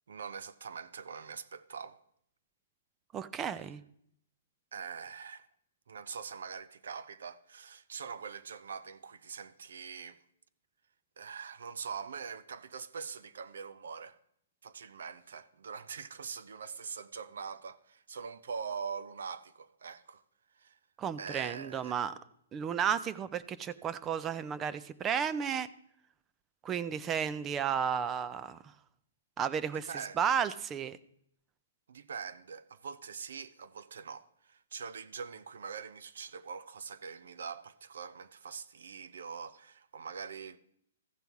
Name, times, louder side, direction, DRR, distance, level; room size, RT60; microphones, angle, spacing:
voice 1, 0.1-2.0 4.7-5.5 5.9-10.2 11.2-14.2 14.6-20.2 20.5-20.8 21.2-22.0 29.9-30.5 31.9-40.6, right 6 dB, 80° right, 0.6 m, -43 dB
voice 2, 3.1-3.8 21.0-22.1 22.5-25.7 26.6-28.7 29.4-29.9 30.2-31.0, right 8 dB, 15° right, 0.3 m, -33 dB
14.5 x 5.4 x 4.6 m
hypercardioid pair, 170°, 0 cm